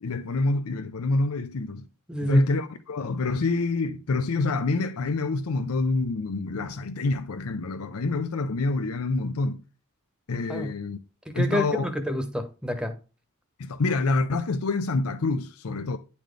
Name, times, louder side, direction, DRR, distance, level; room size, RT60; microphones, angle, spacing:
voice 1, 0.0-1.9 2.2-9.6 10.3-11.0 11.3-11.9 13.6-16.0, left 3 dB, 80° left, 0.6 m, -27 dB
voice 2, 2.1-2.4 10.5-10.7 11.3-12.9, equal, 5° right, 1.0 m, -28 dB
10.0 x 4.3 x 3.3 m
head